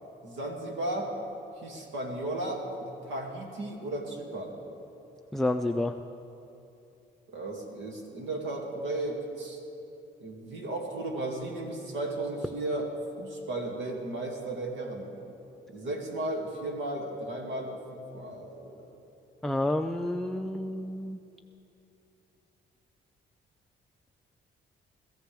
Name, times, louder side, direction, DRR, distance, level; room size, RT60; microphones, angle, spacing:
voice 1, 0.2-1.1 1.6-4.6 7.3-9.6 10.2-12.9 13.2-15.1 15.7-18.8, right 2 dB, 85° right, 0 dB, 2.4 m, -35 dB
voice 2, 5.3-5.9 19.4-21.2, left 1 dB, ahead, 6 dB, 0.4 m, -29 dB
22.0 x 14.5 x 3.5 m, 2.9 s
cardioid pair, 90°, 20 cm